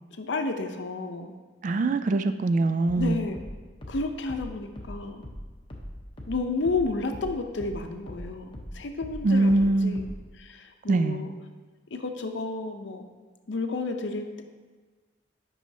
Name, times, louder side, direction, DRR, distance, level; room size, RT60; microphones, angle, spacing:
voice 1, 0.2-1.3 3.0-3.4 3.9-5.2 6.3-11.3 11.9-13.1 13.5-14.4, left 3 dB, 75° left, 6 dB, 0.7 m, -31 dB
voice 2, 1.6-3.2 9.2-10.0 10.9-11.2, right 2 dB, 45° right, 10 dB, 0.3 m, -23 dB
sound 1, 2.9-7.8 8.1-10.3, equal, 30° left, 0.9 m, -40 dB
9.1 x 5.5 x 2.8 m, 1.4 s
head